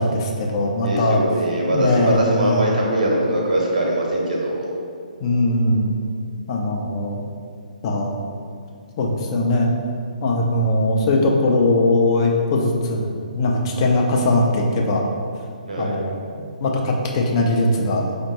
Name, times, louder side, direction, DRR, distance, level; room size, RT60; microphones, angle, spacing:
voice 1, 0.0-1.2 1.7-2.6 5.2-5.9 6.5-7.2 7.8-8.1 9.0-9.7 10.2-15.0 15.8-16.1 16.6-18.0, left 2 dB, 35° left, 0 dB, 0.5 m, -20 dB
voice 2, 0.8-4.6 15.7-16.0, right 1 dB, 65° right, -3 dB, 0.9 m, -21 dB
4.9 x 2.2 x 2.8 m, 2.3 s
figure-of-eight pair, 130°, 5 cm